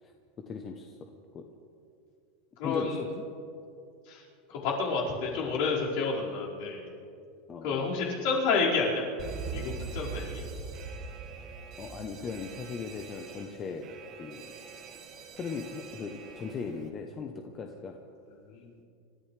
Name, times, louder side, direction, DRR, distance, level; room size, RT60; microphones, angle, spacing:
voice 1, 0.5-1.0 1.3-1.4 2.6-3.2 7.5-7.9 11.8-13.9 14.2-14.5 15.3-18.0, left 5 dB, 25° left, 4 dB, 0.9 m, -38 dB
voice 2, 2.6-3.0 4.1-4.2 4.5-6.9 7.6-9.0 9.5-10.4 18.5-18.7, left 4 dB, 55° left, -6 dB, 5.0 m, -29 dB
Alarm, 9.2-16.9, right 5 dB, 30° right, 1.6 m, -42 dB
27.5 x 13.5 x 3.4 m, 2.5 s
supercardioid pair, 165°, 0 cm